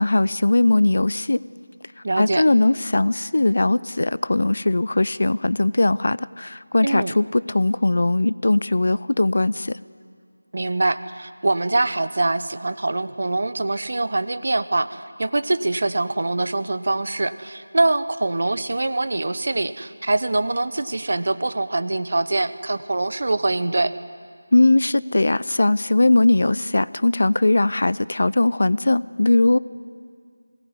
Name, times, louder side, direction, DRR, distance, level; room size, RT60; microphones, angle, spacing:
voice 1, 0.0-1.4 2.2-9.8 24.5-29.6, left 2 dB, 50° left, 19 dB, 0.5 m, -19 dB
voice 2, 2.0-2.4 6.8-7.2 10.5-23.9, right 2 dB, 50° right, 14 dB, 1.0 m, -24 dB
22.0 x 18.5 x 9.7 m, 2.1 s
figure-of-eight pair, 165°, 0 cm